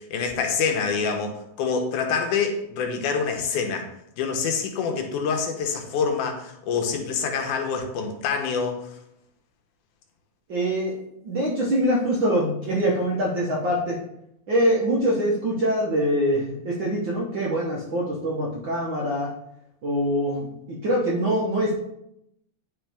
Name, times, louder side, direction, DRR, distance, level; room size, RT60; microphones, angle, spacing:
voice 1, 0.0-3.9 4.2-8.9, left 5 dB, 90° left, 3 dB, 2.4 m, -26 dB
voice 2, 10.5-10.9 11.2-14.0 14.5-19.3 19.8-21.8, equal, 60° right, -4 dB, 1.2 m, -24 dB
10.0 x 3.6 x 3.4 m, 0.78 s
omnidirectional pair, 3.5 m